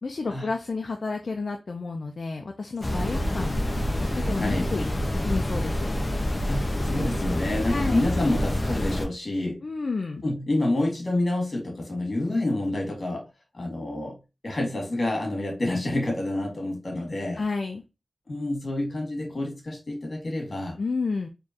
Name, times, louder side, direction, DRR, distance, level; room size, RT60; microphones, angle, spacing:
voice 1, 0.0-3.6 4.1-4.9 5.2-5.9 7.7-8.0 9.6-10.2 17.3-17.8 20.8-21.3, left 4 dB, 65° left, 0.6 m, -31 dB
sound 1, 2.8-9.1, left 1 dB, 30° left, 0.8 m, -27 dB
voice 2, 4.3-4.7 6.5-9.6 10.2-13.3 13.5-14.2 14.4-17.4 18.3-20.8, left 1 dB, 45° left, 2.1 m, -28 dB
4.4 x 3.2 x 2.9 m
wide cardioid pair, 90°, 0 cm